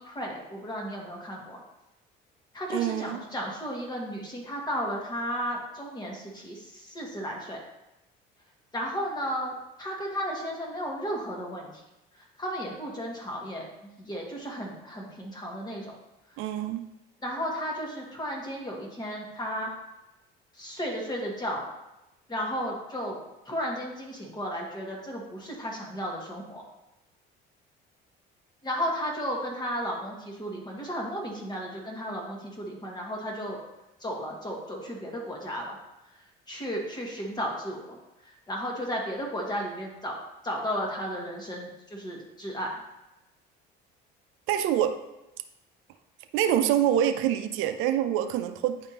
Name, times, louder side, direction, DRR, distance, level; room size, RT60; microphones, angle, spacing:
voice 1, 0.0-1.6 2.5-7.6 8.7-11.8 12.1-16.0 17.2-19.7 20.5-21.6 22.3-23.2 23.4-26.6 28.6-33.6 34.0-35.8 36.1-40.2 40.4-42.8, equal, 20° left, -1 dB, 1.5 m, -34 dB
voice 2, 2.7-3.2 16.4-16.9 44.5-45.0 46.3-48.8, right 10 dB, 75° right, 9 dB, 0.5 m, -26 dB
9.5 x 3.5 x 2.9 m, 0.95 s
cardioid pair, 110°, 21 cm